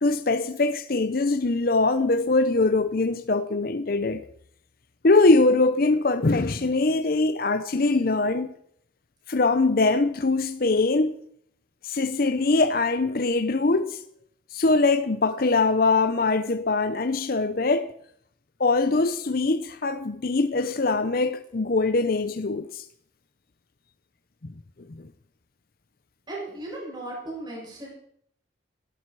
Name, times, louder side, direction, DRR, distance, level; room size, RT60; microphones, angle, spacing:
voice 1, 0.0-4.2 5.0-8.5 9.3-11.1 11.8-14.0 14.5-17.9 18.6-22.8 24.9-25.1, left 3 dB, 50° left, 0.7 m, -22 dB
voice 2, 26.3-27.9, right 2 dB, 25° right, 7.0 m, -36 dB
19.0 x 13.0 x 4.8 m
head